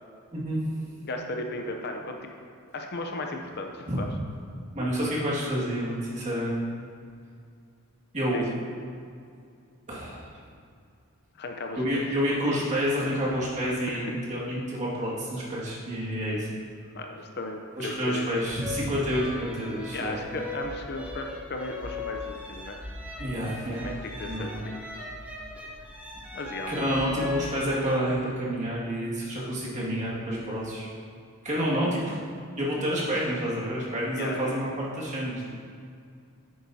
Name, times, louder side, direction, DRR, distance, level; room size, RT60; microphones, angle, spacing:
voice 1, 0.3-0.7 3.9-4.0 4.7-6.6 8.1-8.5 9.9-10.3 11.8-16.5 17.8-20.2 23.2-24.6 26.7-30.9 31.4-32.2 32.6-35.4, equal, 35° right, -6 dB, 2.1 m, -29 dB
voice 2, 1.0-2.3 2.7-4.1 8.3-8.4 11.3-12.2 13.9-14.1 16.9-18.3 19.9-22.8 23.8-24.8 26.3-26.9 29.4-29.7 34.1-34.6, left 2 dB, 50° left, 3 dB, 0.6 m, -36 dB
sound 1, 18.4-28.0, left 2 dB, 5° right, 1.0 m, -38 dB
10.0 x 8.6 x 2.8 m, 2.3 s
head